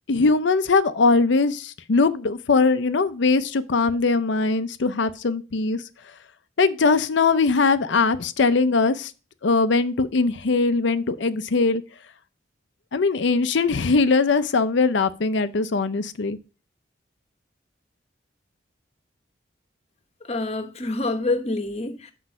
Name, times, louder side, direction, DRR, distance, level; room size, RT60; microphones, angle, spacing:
voice 1, 0.1-5.9 6.6-9.1 9.4-11.8 12.9-16.4, left 4 dB, 65° left, 0.6 m, -21 dB
voice 2, 20.2-22.1, left 2 dB, 30° left, 1.0 m, -27 dB
6.1 x 5.4 x 6.4 m
head